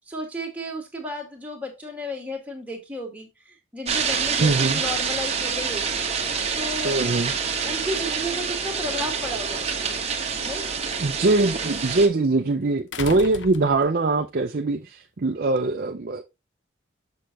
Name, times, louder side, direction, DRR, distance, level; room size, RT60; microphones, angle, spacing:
voice 1, 0.1-7.0 7.7-9.7 10.4-10.7, left 1 dB, 5° right, 1.8 m, -33 dB
sound 1, 3.9-12.1, right 6 dB, 30° right, 1.0 m, -27 dB
voice 2, 4.4-4.8 6.8-7.3 11.0-16.2, right 3 dB, 45° right, 0.5 m, -22 dB
sound 2, 9.6-9.7 12.9-14.2 15.6-15.7, left 6 dB, 60° left, 0.5 m, -36 dB
6.6 x 6.3 x 2.9 m
head